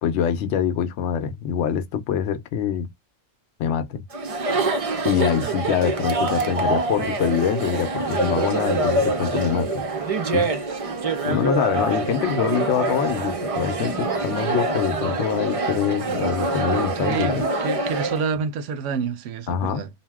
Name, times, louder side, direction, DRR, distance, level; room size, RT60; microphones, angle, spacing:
voice 1, 0.0-2.9 3.6-4.0 5.0-9.7 10.3-10.5 11.3-17.4 19.5-19.8, left 8 dB, 75° left, 0.9 m, -24 dB
Chatter, 4.1-18.2, right 2 dB, 55° right, 0.4 m, -25 dB
voice 2, 17.0-19.9, right 5 dB, 80° right, 0.9 m, -28 dB
2.6 x 2.0 x 3.3 m
omnidirectional pair, 1.3 m